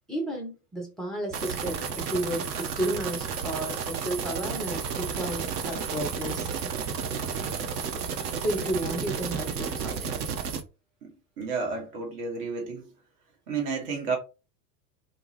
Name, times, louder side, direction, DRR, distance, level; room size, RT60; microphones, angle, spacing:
voice 1, 0.1-6.5 8.4-10.2, right 1 dB, ahead, 0.4 m, -32 dB
sound 1, 1.3-10.6, right 6 dB, 65° right, 0.7 m, -32 dB
voice 2, 11.0-12.9 13.5-14.2, right 5 dB, 40° right, 0.9 m, -31 dB
2.3 x 2.0 x 3.0 m
figure-of-eight pair, 80°, 50 cm